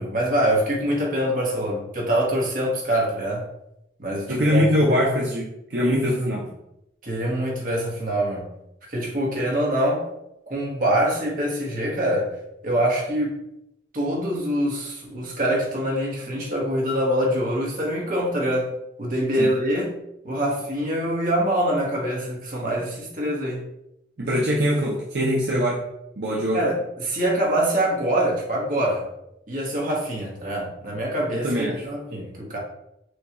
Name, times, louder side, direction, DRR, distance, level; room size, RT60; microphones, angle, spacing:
voice 1, 0.0-3.5 4.0-5.0 6.1-6.4 7.0-8.5 8.9-10.1 10.5-12.3 12.6-13.4 13.9-18.7 19.0-19.9 20.2-23.6 26.5-29.1 29.5-32.6, right 1 dB, 45° right, -3 dB, 1.1 m, -24 dB
voice 2, 4.3-6.4 19.4-19.5 24.2-25.8 26.2-26.6 31.4-31.8, equal, 65° right, -4 dB, 0.7 m, -22 dB
6.2 x 2.3 x 3.0 m, 0.83 s
head